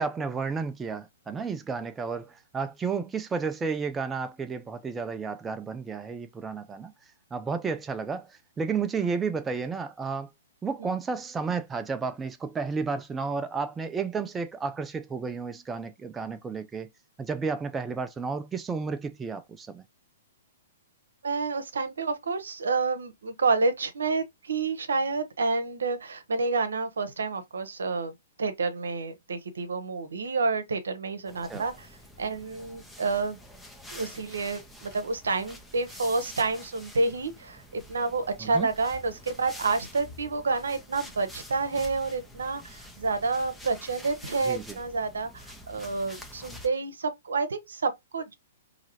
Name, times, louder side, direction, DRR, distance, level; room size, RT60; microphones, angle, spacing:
voice 1, 0.0-6.9 7.3-10.3 10.6-16.9 17.2-19.8 31.5-31.7 38.4-38.7 44.4-44.8, right 5 dB, 10° right, 0.4 m, -32 dB
voice 2, 21.2-28.1 28.4-31.9 32.2-33.4 33.9-48.3, right 3 dB, 65° right, 0.8 m, -29 dB
sound 1, 31.3-46.7, left 1 dB, 5° left, 0.8 m, -47 dB
4.7 x 2.7 x 2.9 m
figure-of-eight pair, 115°, 0 cm